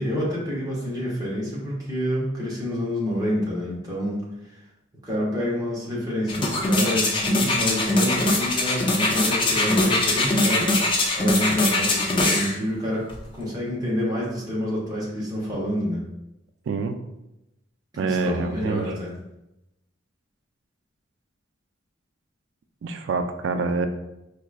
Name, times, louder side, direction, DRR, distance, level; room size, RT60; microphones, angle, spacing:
voice 1, 0.0-4.6 5.0-16.0 17.9-19.1, equal, 20° right, -6 dB, 0.9 m, -28 dB
sound 1, 6.3-12.5 13.1-13.2, left 2 dB, 25° left, 0.4 m, -22 dB
voice 2, 18.0-18.8 22.8-23.9, right 4 dB, 75° right, 8 dB, 0.3 m, -26 dB
4.7 x 2.3 x 2.4 m, 0.91 s
head